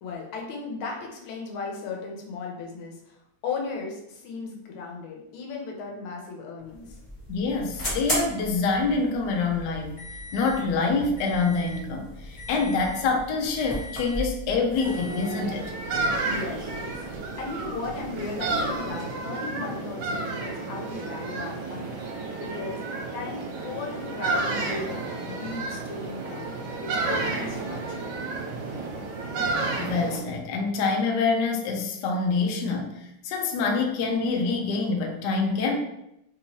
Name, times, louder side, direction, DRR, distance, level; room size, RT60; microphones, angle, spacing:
voice 1, 0.0-7.0 16.2-17.0 17.4-22.0 22.4-22.8 23.1-26.5 26.8-28.2, left 4 dB, 90° left, 0 dB, 1.6 m, -36 dB
sound 1, 6.6-19.0, equal, 45° left, 0.4 m, -38 dB
voice 2, 7.3-10.0 10.3-15.7 29.8-35.7, left 4 dB, 70° left, 2 dB, 1.1 m, -26 dB
sound 2, 14.8-30.2, right 3 dB, 75° right, 1.4 m, -31 dB
3.5 x 2.9 x 2.7 m, 0.83 s
omnidirectional pair, 2.2 m